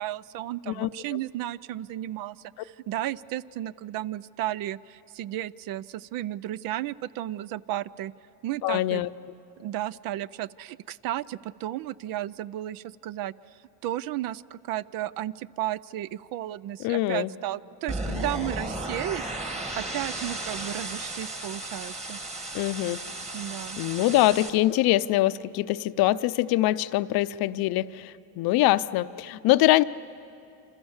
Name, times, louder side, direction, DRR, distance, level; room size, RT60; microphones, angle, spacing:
voice 1, 0.0-8.1 8.4-9.0 9.6-13.3 13.8-19.3 19.8-22.2 23.3-23.8, right 14 dB, 55° right, 19 dB, 0.5 m, -33 dB
voice 2, 0.7-1.2 8.6-9.1 16.8-17.3 22.5-23.0 23.8-29.8, left 16 dB, 55° left, 15 dB, 0.7 m, -24 dB
sound 1, 17.9-24.5, right 1 dB, 15° right, 1.8 m, -34 dB
28.5 x 26.5 x 7.2 m, 2.8 s
cardioid pair, 135°, 43 cm